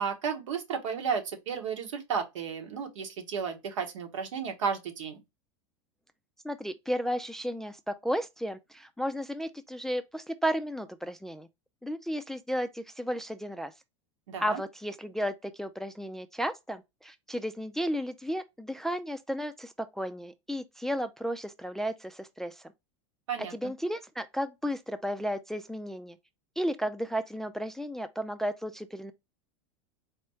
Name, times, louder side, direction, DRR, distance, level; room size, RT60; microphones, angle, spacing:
voice 1, 0.0-5.2 14.3-14.6 23.3-23.7, right 6 dB, 80° right, 1.2 m, -33 dB
voice 2, 6.4-11.5 11.8-13.7 14.4-22.6 23.5-26.2 26.6-29.1, equal, 5° left, 0.3 m, -33 dB
4.2 x 2.2 x 4.2 m
hypercardioid pair, 105°, 16 cm